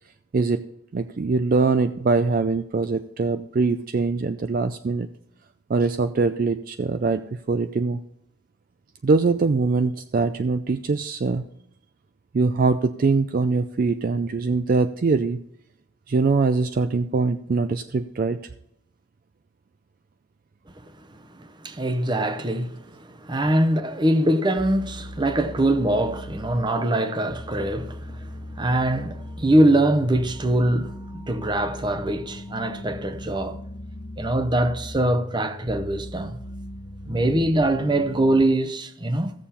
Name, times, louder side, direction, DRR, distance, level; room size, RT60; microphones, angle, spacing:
voice 1, 0.3-0.6 0.9-5.1 5.7-7.2 7.5-8.0 9.0-11.4 12.3-15.4 16.1-18.4, right 4 dB, 45° right, 0.4 m, -22 dB
voice 2, 21.3-22.8 23.1-33.6 34.2-36.4 37.0-39.3, right 1 dB, 20° right, 0.7 m, -23 dB
sound 1, 24.6-38.4, equal, 65° left, 1.2 m, -38 dB
16.0 x 7.0 x 4.3 m
head